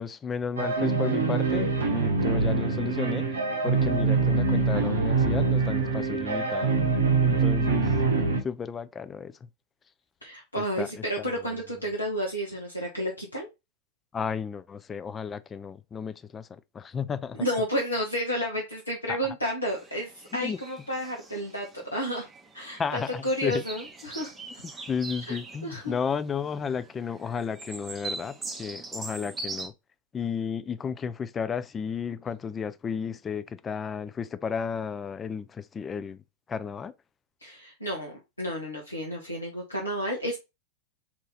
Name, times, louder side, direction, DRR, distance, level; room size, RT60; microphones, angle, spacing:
voice 1, 0.0-3.3 3.6-6.8 7.2-7.9 8.4-9.3 10.8-10.9 14.1-17.4 19.1-19.2 20.3-20.6 22.8-23.6 24.9-29.7 30.1-36.2 36.5-36.9, left 6 dB, 20° left, 0.3 m, -33 dB
sound 1, 0.6-8.4, right 4 dB, 70° right, 0.7 m, -24 dB
voice 2, 10.2-13.5 17.4-22.3 22.5-24.3 25.3-25.4 25.6-26.0 37.4-40.4, equal, 80° left, 0.9 m, -31 dB
sound 2, 19.6-29.7, right 3 dB, 15° right, 0.7 m, -42 dB
2.9 x 2.7 x 3.9 m
figure-of-eight pair, 90°, 0 cm